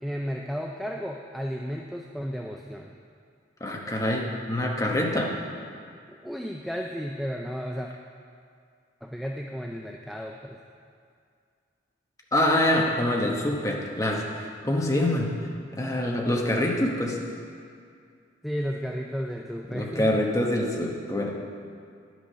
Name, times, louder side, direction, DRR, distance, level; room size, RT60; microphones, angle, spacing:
voice 1, 0.0-2.9 6.2-7.9 9.0-10.6 18.4-20.2, equal, ahead, 1 dB, 0.3 m, -33 dB
voice 2, 3.6-5.3 12.3-15.3 15.8-17.2 19.7-21.3, left 1 dB, 15° left, -1 dB, 1.0 m, -25 dB
10.0 x 6.2 x 5.5 m, 2.3 s
head